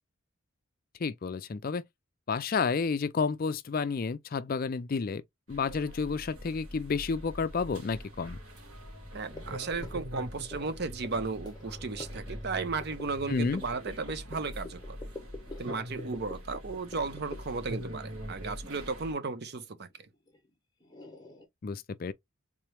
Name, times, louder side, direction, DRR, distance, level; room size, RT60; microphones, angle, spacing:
voice 1, 1.0-1.8 2.3-5.2 5.5-8.4 13.3-13.6 21.6-22.1, left 5 dB, 40° left, 0.4 m, -30 dB
sound 1, 5.5-19.1, equal, 75° right, 2.0 m, -43 dB
voice 2, 9.1-15.0 15.6-19.9, right 4 dB, 45° right, 0.6 m, -35 dB
sound 2, 9.3-20.5 20.8-21.5, left 2 dB, 20° left, 1.0 m, -48 dB
3.7 x 3.1 x 3.0 m
head